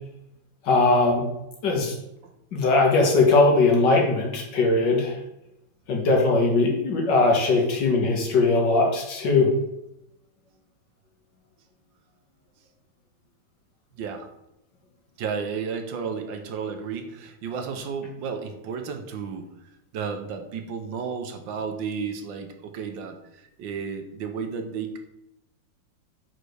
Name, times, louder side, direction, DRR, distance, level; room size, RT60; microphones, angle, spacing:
voice 1, 0.6-1.3 1.6-2.0 2.5-5.2 5.9-9.5, left 3 dB, 65° left, 0 dB, 2.2 m, -20 dB
voice 2, 14.0-14.3 15.2-19.5 19.9-25.0, right 6 dB, 75° right, 6 dB, 1.6 m, -32 dB
5.6 x 5.0 x 6.3 m, 0.85 s
omnidirectional pair, 2.1 m